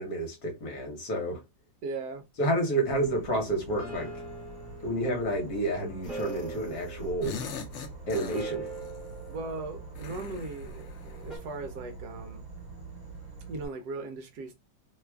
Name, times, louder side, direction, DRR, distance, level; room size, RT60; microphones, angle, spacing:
voice 1, 0.0-1.4 2.4-4.1 4.8-7.4 8.1-8.7, right 1 dB, 60° left, 1.3 m, -30 dB
voice 2, 1.8-2.3 9.3-12.4 13.5-14.6, right 3 dB, 70° right, 1.0 m, -38 dB
Insect / Frog, 2.8-13.7, right 4 dB, 40° right, 1.5 m, -45 dB
sound 1, 3.1-10.6 11.3-11.4, right 3 dB, ahead, 1.0 m, -43 dB
sound 2, 6.0-6.7 7.0-9.0 10.0-11.5, left 5 dB, 80° left, 0.6 m, -41 dB
3.0 x 2.3 x 3.3 m
omnidirectional pair, 2.0 m